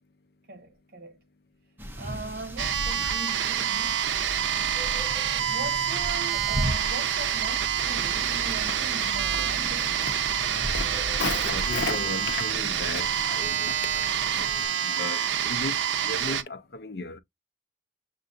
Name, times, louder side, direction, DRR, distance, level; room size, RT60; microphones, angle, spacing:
voice 1, 0.5-1.2 2.0-4.1 5.5-10.1, right 2 dB, 55° right, 1.0 m, -40 dB
sound 1, 1.8-14.7, equal, 10° right, 0.6 m, -37 dB
sound 2, 2.6-16.4, right 9 dB, 80° right, 0.5 m, -27 dB
Walk footsteps, 7.7-15.1, left 4 dB, 75° left, 0.9 m, -37 dB
voice 2, 11.4-14.1 14.4-17.2, left 2 dB, 60° left, 0.5 m, -37 dB
6.6 x 2.6 x 2.4 m
head